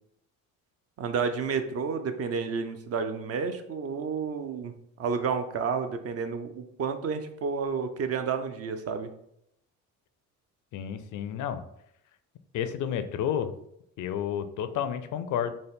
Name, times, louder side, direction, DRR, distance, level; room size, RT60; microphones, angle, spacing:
voice 1, 1.0-9.1, right 5 dB, 45° right, 8 dB, 0.5 m, -31 dB
voice 2, 10.7-11.7 12.5-13.5 14.0-15.5, left 9 dB, 60° left, 10 dB, 0.4 m, -31 dB
4.0 x 2.1 x 3.5 m, 0.75 s
supercardioid pair, 85°, 36 cm